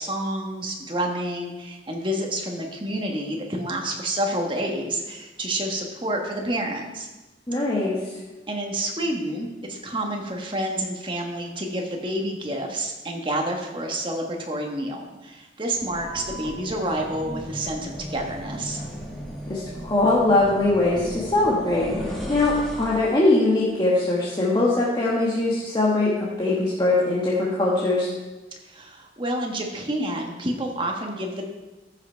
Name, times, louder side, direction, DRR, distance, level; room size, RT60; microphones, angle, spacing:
voice 1, 0.0-7.1 8.5-18.9 28.6-31.4, right 1 dB, 30° right, 1 dB, 1.4 m, -29 dB
voice 2, 7.5-8.0 19.5-28.1, left 2 dB, 25° left, -6 dB, 1.4 m, -22 dB
sound 1, 15.7-23.2, equal, 5° left, 2.0 m, -36 dB
14.0 x 5.8 x 4.5 m, 1.2 s
head